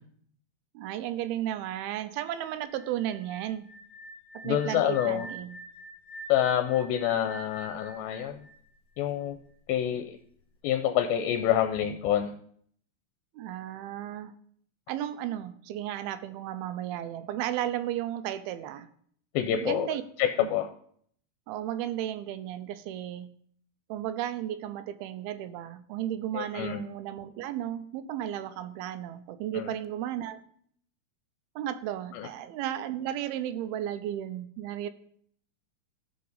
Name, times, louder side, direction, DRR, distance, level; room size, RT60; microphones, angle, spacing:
voice 1, 0.7-3.7 4.3-5.6 13.3-14.3 14.9-18.9 19.6-20.0 20.4-20.5 21.5-23.3 23.9-30.4 31.6-34.9, right 11 dB, 85° right, 12 dB, 2.5 m, -34 dB
sound 1, 2.4-9.3, right 1 dB, 55° left, 2.4 m, -46 dB
voice 2, 4.4-5.3 6.3-8.4 9.0-9.4 9.7-10.1 10.6-12.3 19.4-19.9 20.2-20.7 26.4-26.8 29.5-29.7 32.2-32.3, left 10 dB, 80° left, 6 dB, 2.3 m, -27 dB
13.5 x 5.7 x 4.0 m, 0.62 s
omnidirectional pair, 4.4 m